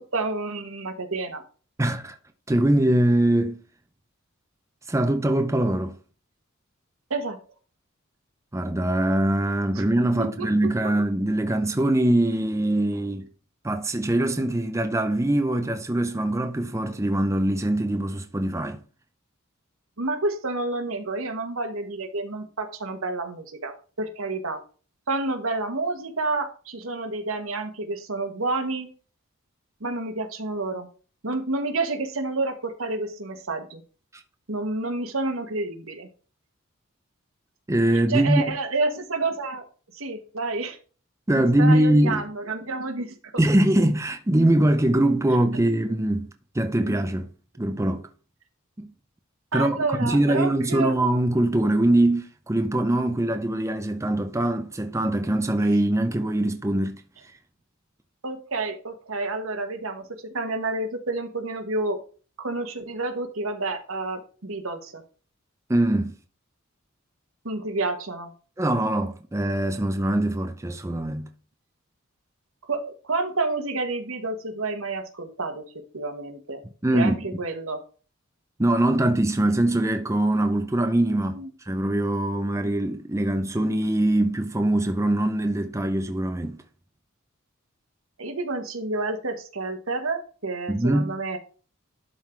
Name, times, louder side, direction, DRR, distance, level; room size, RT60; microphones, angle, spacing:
voice 1, 0.1-1.4 7.1-7.4 9.7-9.8 10.1-10.5 10.8-10.9 20.0-24.6 25.1-28.9 29.8-30.9 31.2-33.8 34.5-36.1 38.1-39.6 39.9-40.8 41.4-43.3 49.5-50.9 58.2-62.0 62.4-65.0 67.4-68.3 72.7-75.6 75.9-76.6 76.9-77.8 81.3-81.5 88.2-91.4, right 3 dB, 70° right, 1.5 m, -29 dB
voice 2, 1.8-2.2 2.5-3.6 4.9-6.0 8.5-13.3 13.6-18.8 37.7-38.4 41.3-42.2 43.4-46.3 46.5-47.3 47.6-48.1 48.8-48.9 49.5-57.0 65.7-66.1 68.6-71.3 76.8-77.2 78.6-86.6 90.7-91.2, right 1 dB, 15° right, 0.6 m, -22 dB
11.5 x 3.9 x 4.5 m
head